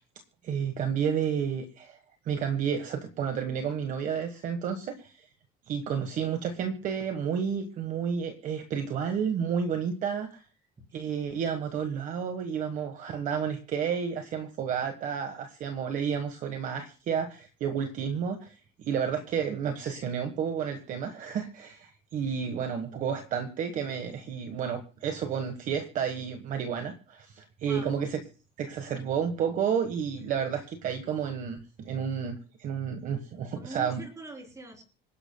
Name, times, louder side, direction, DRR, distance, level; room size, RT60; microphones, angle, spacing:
voice 1, 0.4-2.0 2.2-5.3 5.7-10.5 10.9-28.2 28.6-34.0, right 7 dB, 40° right, 7 dB, 1.3 m, -31 dB
voice 2, 33.6-34.8, right 3 dB, 15° right, 2 dB, 3.3 m, -43 dB
26.5 x 11.0 x 2.2 m, 0.38 s
cardioid pair, 175°, 20 cm